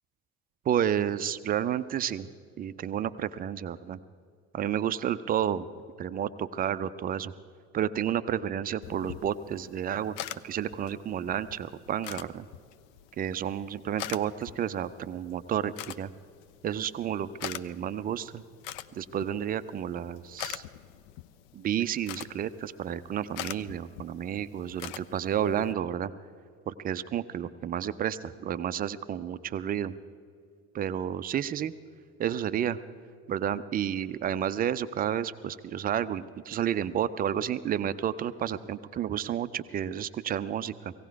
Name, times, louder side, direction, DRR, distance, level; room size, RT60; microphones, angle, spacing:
voice 1, 0.7-2.3 2.6-4.0 4.5-5.7 6.0-7.3 7.7-10.2 10.4-12.5 13.2-16.1 16.6-18.4 18.9-20.6 21.5-26.1 26.7-29.9 30.7-31.7 32.2-32.8 33.3-40.9, right 9 dB, 20° right, 14 dB, 0.4 m, -31 dB
sound 1, 8.8-25.7, left 12 dB, 55° left, 0.6 m, -44 dB
17.5 x 17.0 x 4.6 m, 2.2 s
figure-of-eight pair, 65°, 45 cm